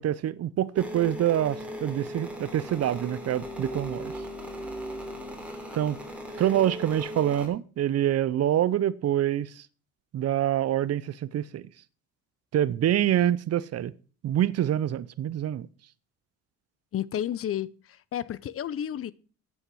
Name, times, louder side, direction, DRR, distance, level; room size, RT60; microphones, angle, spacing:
voice 1, 0.0-4.1 5.7-6.0 6.4-9.6 10.1-11.6 12.5-13.9 14.2-15.7, right 11 dB, 50° right, 0.7 m, -26 dB
sound 1, 0.7-7.5, equal, 5° right, 3.2 m, -38 dB
voice 2, 16.9-19.1, left 10 dB, 45° left, 0.6 m, -32 dB
9.9 x 8.6 x 4.6 m
cardioid pair, 105°, 32 cm